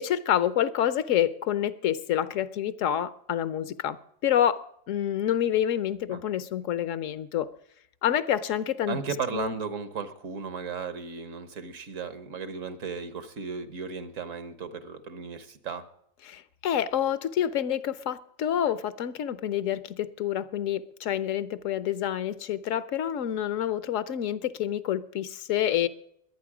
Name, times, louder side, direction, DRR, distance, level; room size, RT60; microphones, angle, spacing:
voice 1, 0.0-7.5 8.0-9.0 9.3-9.5 16.3-25.9, left 10 dB, 80° left, 1.1 m, -28 dB
voice 2, 8.9-15.9, right 5 dB, 80° right, 1.4 m, -35 dB
21.5 x 9.1 x 4.9 m
omnidirectional pair, 1.3 m